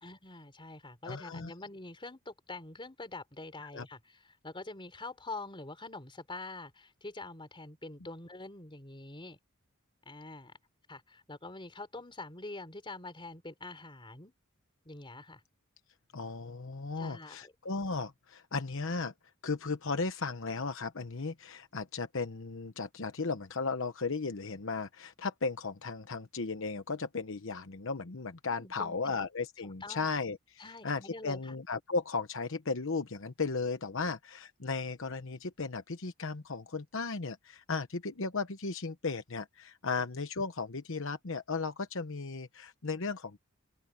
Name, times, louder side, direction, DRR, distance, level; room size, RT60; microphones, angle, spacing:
voice 1, 0.0-9.4 10.1-10.5 10.9-14.3 14.9-15.4 17.0-17.5 28.6-29.2 29.6-30.1 30.6-31.5, left 2 dB, 25° left, 4.0 m, -45 dB
voice 2, 1.0-1.5 3.7-3.8 16.1-19.1 19.4-43.4, left 4 dB, 65° left, 1.0 m, -35 dB
open air
head